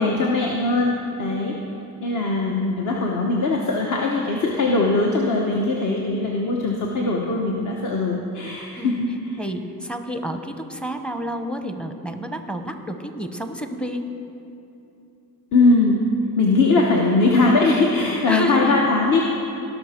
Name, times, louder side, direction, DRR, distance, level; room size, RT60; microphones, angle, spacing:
voice 1, 0.0-1.5 2.0-9.4 15.5-16.0 16.4-19.2, left 3 dB, 50° left, -1 dB, 1.1 m, -20 dB
voice 2, 9.4-14.1 18.3-18.8, right 1 dB, 5° left, 7 dB, 0.7 m, -29 dB
17.5 x 6.0 x 4.4 m, 2.8 s
cardioid pair, 95°, 38 cm